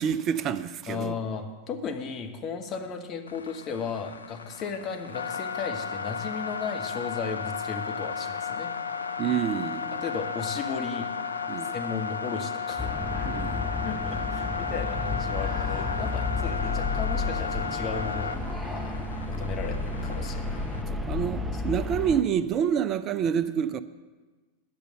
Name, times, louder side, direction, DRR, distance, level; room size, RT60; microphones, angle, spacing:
voice 1, 0.0-1.1 9.2-10.0 11.5-11.8 13.2-13.7 20.9-23.8, right 8 dB, 30° right, 0.5 m, -28 dB
voice 2, 0.9-8.7 9.9-11.1 11.7-12.9 13.8-19.0 19.3-20.8 21.5-21.6, left 5 dB, 30° left, 1.2 m, -35 dB
sound 1, 3.3-20.8, left 6 dB, 75° left, 0.4 m, -34 dB
sound 2, 12.8-22.2, left 3 dB, 5° right, 0.8 m, -31 dB
10.5 x 6.7 x 7.6 m
figure-of-eight pair, 90°, 0 cm